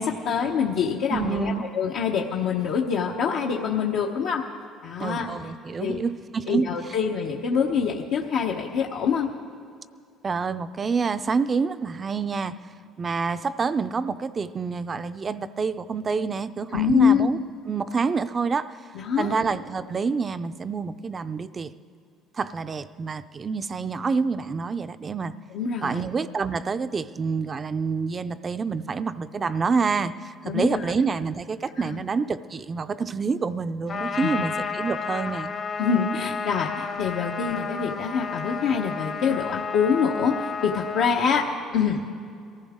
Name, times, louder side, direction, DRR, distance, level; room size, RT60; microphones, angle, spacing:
voice 1, 0.0-4.4 4.8-5.3 5.8-6.0 6.5-9.3 16.7-17.3 18.9-19.4 25.5-26.1 30.4-30.9 31.8-32.0 34.2-34.3 35.8-42.0, left 6 dB, 75° left, -2 dB, 1.0 m, -25 dB
voice 2, 1.1-1.6 5.0-6.7 10.2-12.6 13.0-17.4 17.7-18.8 19.2-21.7 22.4-25.3 25.8-35.5, right 5 dB, 30° right, 12 dB, 0.5 m, -27 dB
Trumpet, 33.9-41.1, left 5 dB, 45° left, 1.0 m, -31 dB
23.0 x 15.0 x 3.7 m, 2.3 s
cardioid pair, 115°, 0 cm